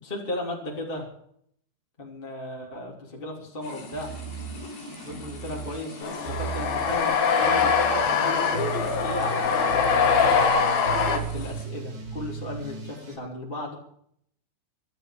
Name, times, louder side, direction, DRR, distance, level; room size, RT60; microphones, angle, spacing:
voice 1, 0.0-1.1 2.0-4.1 5.0-10.4 10.9-13.8, left 1 dB, 15° left, -2 dB, 2.6 m, -35 dB
sound 1, 3.6-11.6, left 3 dB, 80° left, 6.5 m, -43 dB
sound 2, 3.9-13.1, right 6 dB, 70° right, 6.5 m, -37 dB
sound 3, 6.0-11.2, left 5 dB, 60° left, 3.5 m, -23 dB
25.0 x 11.5 x 5.1 m, 0.69 s
omnidirectional pair, 5.1 m